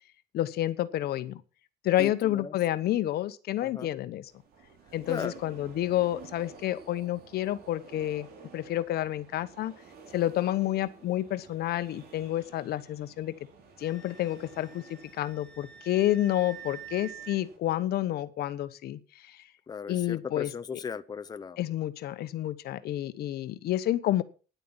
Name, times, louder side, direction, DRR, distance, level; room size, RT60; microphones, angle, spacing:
voice 1, 0.3-1.4 1.8-4.3 4.9-8.3 8.5-9.7 10.1-13.3 13.8-19.4 19.9-20.5 21.6-24.2, left 13 dB, 70° left, 13 dB, 1.0 m, -29 dB
voice 2, 2.0-2.6 3.6-3.9 5.1-5.3 19.7-21.6, left 6 dB, 25° left, 11 dB, 0.7 m, -37 dB
sound 1, 4.3-17.6, right 5 dB, 65° right, 3.8 m, -53 dB
Wind instrument woodwind instrument, 13.8-17.4, right 7 dB, ahead, 2.9 m, -47 dB
10.5 x 9.2 x 7.2 m, 0.37 s
cardioid pair, 110°, 17 cm